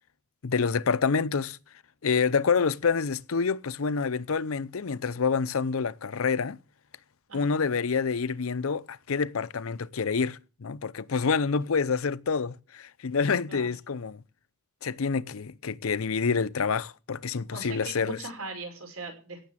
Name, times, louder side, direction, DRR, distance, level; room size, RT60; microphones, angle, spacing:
voice 1, 0.4-1.6 2.0-6.6 7.3-14.2 14.8-18.2, left 5 dB, 70° left, 0.6 m, -27 dB
voice 2, 7.3-7.6 13.5-13.7 17.5-19.5, right 3 dB, 75° right, 5.6 m, -40 dB
17.0 x 7.1 x 7.5 m
head